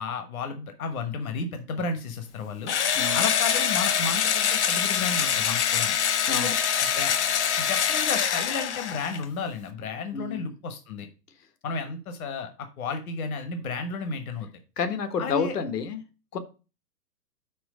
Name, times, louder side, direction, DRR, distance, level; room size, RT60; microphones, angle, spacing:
voice 1, 0.0-2.7 3.1-6.0 6.4-6.6 6.8-7.1 7.6-11.1 11.6-14.5 15.2-15.5, left 4 dB, 60° left, 7 dB, 1.3 m, -33 dB
Engine / Drill, 2.7-9.2, left 8 dB, 45° left, 0.9 m, -25 dB
voice 2, 10.1-10.5 14.8-16.0 16.3-16.4, left 5 dB, 80° left, 8 dB, 1.4 m, -29 dB
6.2 x 4.1 x 6.2 m, 0.32 s
hypercardioid pair, 165°, 48 cm